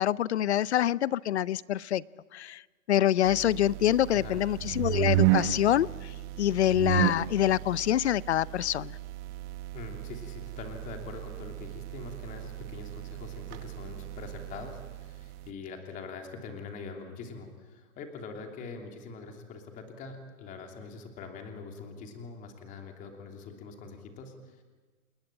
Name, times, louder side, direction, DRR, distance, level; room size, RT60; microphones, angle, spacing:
voice 1, 0.0-2.0 2.3-2.6 2.9-5.9 6.4-8.9, left 12 dB, 50° left, 21 dB, 0.7 m, -26 dB
sound 1, 3.3-15.5, right 15 dB, 20° right, 0.9 m, -33 dB
voice 2, 4.1-4.4 9.7-24.6, left 4 dB, 20° left, 4 dB, 3.1 m, -43 dB
28.5 x 19.5 x 8.9 m, 1.4 s
hypercardioid pair, 155°, 42 cm